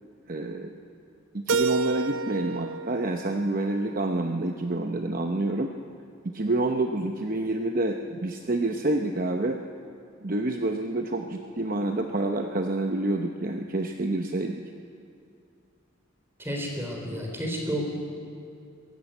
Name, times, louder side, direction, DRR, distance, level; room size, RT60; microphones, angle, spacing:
voice 1, 0.3-0.7 1.3-5.7 6.2-9.6 10.2-14.6, right 2 dB, 40° right, 4 dB, 0.8 m, -28 dB
Keyboard (musical), 1.5-4.4, right 4 dB, 75° right, 0.6 m, -30 dB
voice 2, 16.4-17.9, equal, 10° right, 0 dB, 3.9 m, -31 dB
22.0 x 14.5 x 9.0 m, 2.4 s
head